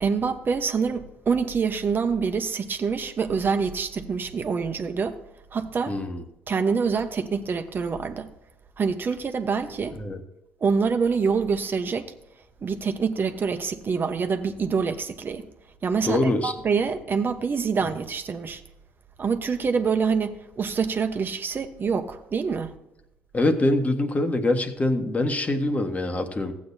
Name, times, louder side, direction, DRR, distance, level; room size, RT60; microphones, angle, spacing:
voice 1, 0.0-5.2 5.5-6.0 6.5-8.3 8.8-10.0 10.6-12.1 12.6-15.4 15.8-18.6 19.2-22.7, right 5 dB, 45° right, 1.1 m, -26 dB
voice 2, 5.9-6.2 10.0-10.2 16.0-16.5 23.3-26.5, left 2 dB, 30° left, 1.5 m, -24 dB
15.0 x 8.5 x 2.8 m
supercardioid pair, 65°, 5 cm